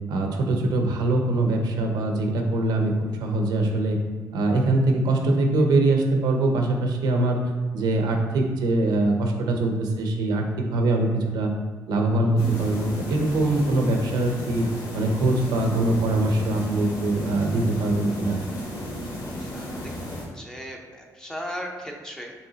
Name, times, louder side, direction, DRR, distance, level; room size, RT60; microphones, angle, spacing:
voice 1, 0.1-2.9 3.2-4.0 4.3-11.5 11.9-14.7 14.9-18.4, right 2 dB, 80° right, 2 dB, 0.7 m, -23 dB
sound 1, 12.4-20.2, equal, 60° left, 1.5 m, -34 dB
voice 2, 19.1-20.1 20.3-22.3, equal, 10° left, 0 dB, 0.7 m, -37 dB
5.6 x 3.3 x 2.8 m, 1.5 s
cardioid pair, 105°, 7 cm